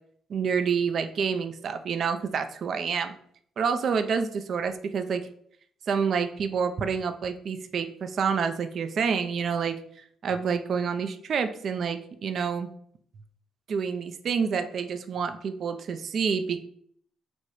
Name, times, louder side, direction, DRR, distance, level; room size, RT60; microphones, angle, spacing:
voice 1, 0.3-3.2 3.6-5.3 5.9-9.7 10.2-12.7 13.7-16.6, right 6 dB, 60° right, 8 dB, 0.3 m, -28 dB
4.6 x 2.1 x 2.9 m, 0.64 s
cardioid pair, 90°, 0 cm